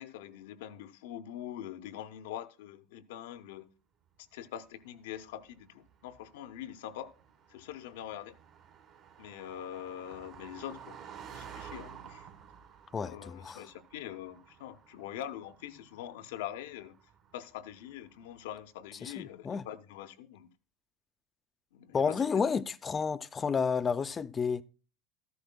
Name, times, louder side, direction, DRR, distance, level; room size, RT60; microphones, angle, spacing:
voice 1, 0.0-3.7 4.3-7.1 7.5-8.4 9.2-11.0 11.3-12.3 13.0-17.0 17.3-20.5 21.7-22.4, left 11 dB, 70° left, 0.6 m, -43 dB
Car passing by, 4.8-18.5, right 8 dB, 50° right, 1.5 m, -53 dB
voice 2, 12.9-13.6 19.0-19.6 21.9-24.6, left 5 dB, 25° left, 0.5 m, -31 dB
13.0 x 11.0 x 2.2 m
hypercardioid pair, 80°, 0 cm